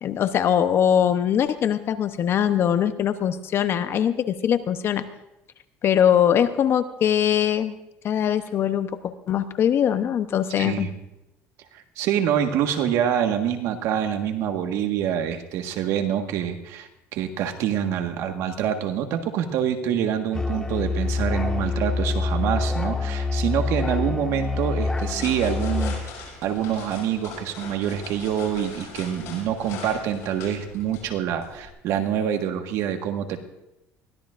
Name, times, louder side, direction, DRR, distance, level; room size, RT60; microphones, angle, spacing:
voice 1, 0.0-5.0 5.8-7.7 8.0-8.9 9.3-10.9, left 9 dB, 50° left, 11 dB, 0.9 m, -22 dB
voice 2, 10.6-10.9 11.7-25.9 26.4-33.4, right 9 dB, 70° right, 5 dB, 1.6 m, -26 dB
Musical instrument, 20.3-26.0, left 3 dB, 15° left, 1.6 m, -26 dB
sound 1, 24.8-31.7, left 5 dB, 65° left, 6.6 m, -41 dB
22.0 x 16.5 x 2.6 m, 0.92 s
cardioid pair, 110°, 5 cm